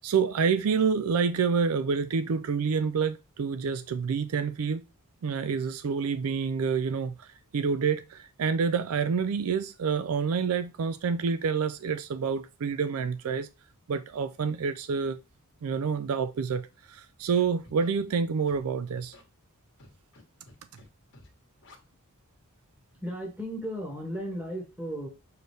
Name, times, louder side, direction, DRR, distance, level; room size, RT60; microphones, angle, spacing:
voice 1, 0.0-4.8 5.2-7.3 7.5-13.5 13.9-15.2 15.6-19.1, right 5 dB, 70° right, 0.4 m, -28 dB
Scratching (performance technique), 17.3-17.9 18.5-18.6 19.0-19.2 19.8-20.2 20.5-20.9 21.1-21.3 21.6-21.8, left 2 dB, 55° left, 1.5 m, -52 dB
voice 2, 23.0-25.1, equal, 10° right, 1.9 m, -35 dB
6.6 x 4.3 x 3.3 m
head